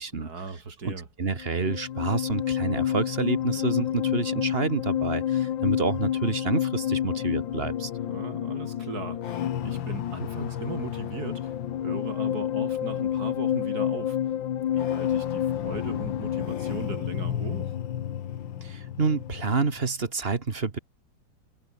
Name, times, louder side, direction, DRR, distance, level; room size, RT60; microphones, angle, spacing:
voice 1, 0.1-1.1 8.1-11.5 11.8-14.2 14.7-17.8, right 4 dB, 55° right, 3.5 m, -38 dB
voice 2, 0.8-7.9 18.6-20.8, right 4 dB, 35° right, 1.7 m, -28 dB
sound 1, 1.4-19.8, left 10 dB, 80° left, 1.9 m, -29 dB
omnidirectional pair, 2.0 m